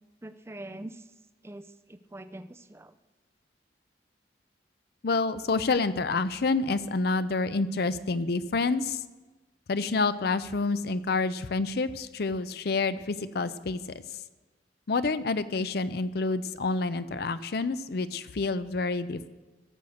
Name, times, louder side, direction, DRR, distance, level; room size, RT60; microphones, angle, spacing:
voice 1, 0.2-1.0 1.4-3.0, right 1 dB, 15° right, 12 dB, 0.4 m, -43 dB
voice 2, 5.0-9.0 9.7-13.8 14.9-19.3, left 3 dB, 60° left, 13 dB, 0.5 m, -28 dB
16.5 x 6.5 x 7.0 m, 1.2 s
head